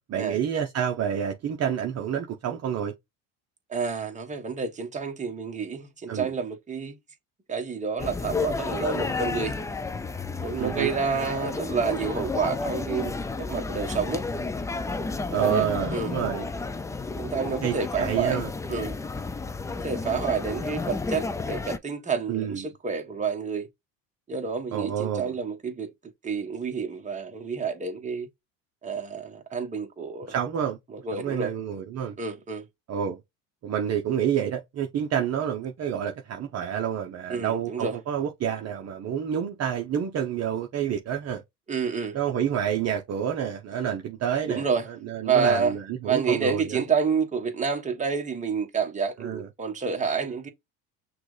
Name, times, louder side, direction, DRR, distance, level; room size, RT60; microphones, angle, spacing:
voice 1, 0.0-2.9 6.1-6.3 10.6-10.9 15.3-16.5 17.6-18.5 22.3-22.6 24.7-25.3 30.3-30.8 31.1-32.1 32.9-33.2 33.6-41.4 42.1-44.7 45.0-46.8 49.2-49.5, right 9 dB, 40° right, 0.8 m, -28 dB
voice 2, 3.7-7.0 7.5-9.6 10.4-13.2 13.5-14.2 15.3-16.1 17.2-18.4 18.7-19.0 19.8-23.7 24.3-25.9 26.2-28.3 28.8-30.3 30.9-31.5 32.2-32.6 37.3-38.0 41.7-42.2 44.5-44.9 45.1-45.7 46.0-50.5, right 5 dB, 20° right, 1.3 m, -29 dB
sound 1, 8.0-21.8, left 3 dB, 10° left, 0.3 m, -31 dB
5.9 x 2.4 x 3.2 m
supercardioid pair, 110°, 38 cm